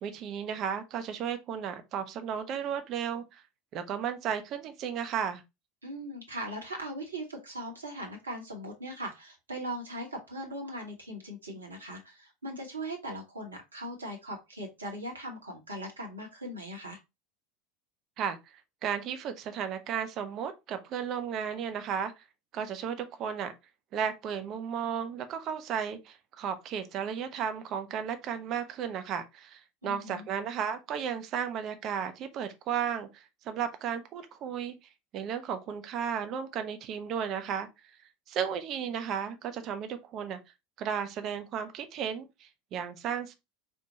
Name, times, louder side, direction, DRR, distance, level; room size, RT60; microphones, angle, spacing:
voice 1, 0.0-3.4 3.7-5.4 18.2-18.4 18.8-22.2 22.5-23.5 23.9-34.7 35.1-37.7 38.3-40.4 40.8-43.3, right 8 dB, 40° right, 0.5 m, -34 dB
voice 2, 5.8-17.0 29.8-30.3, right 1 dB, 80° right, 0.9 m, -39 dB
4.3 x 2.1 x 2.8 m
figure-of-eight pair, 75°, 0 cm